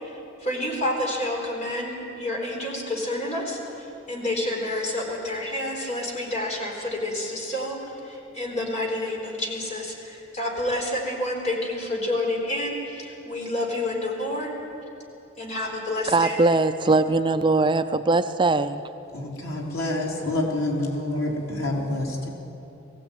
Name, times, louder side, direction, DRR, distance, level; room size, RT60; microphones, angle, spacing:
voice 1, 0.0-7.8 8.0-14.5 15.4-16.4, left 1 dB, 35° left, 0 dB, 4.0 m, -29 dB
voice 2, 16.1-18.8, right 3 dB, 25° right, 9 dB, 0.5 m, -21 dB
voice 3, 19.1-22.3, left 1 dB, 90° left, -2 dB, 4.0 m, -27 dB
20.5 x 16.0 x 9.1 m, 2.8 s
head